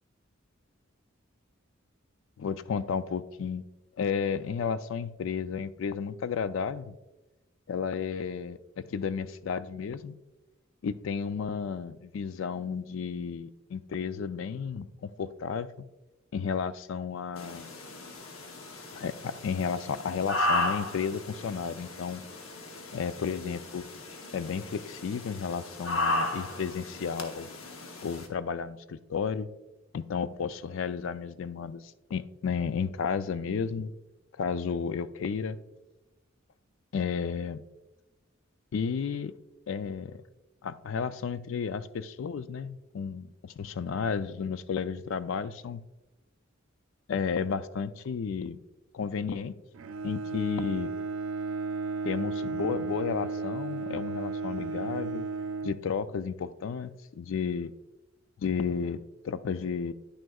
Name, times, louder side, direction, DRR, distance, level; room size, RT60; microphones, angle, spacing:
voice 1, 2.4-3.6 4.0-7.0 7.7-10.2 10.8-15.9 16.3-17.7 18.9-22.2 22.9-23.9 24.3-27.5 28.0-29.5 29.9-33.9 34.4-35.6 36.9-37.6 38.7-39.3 39.7-40.2 40.6-45.8 47.1-48.6 48.9-49.5 50.0-50.9 52.0-55.3 55.6-57.7 58.4-59.9, left 6 dB, 70° left, 14 dB, 0.4 m, -32 dB
sound 1, 17.4-28.3, left 2 dB, 90° left, 0.9 m, -35 dB
Bowed string instrument, 49.7-56.4, right 4 dB, 75° right, 0.4 m, -34 dB
9.8 x 6.2 x 2.3 m, 1.0 s
head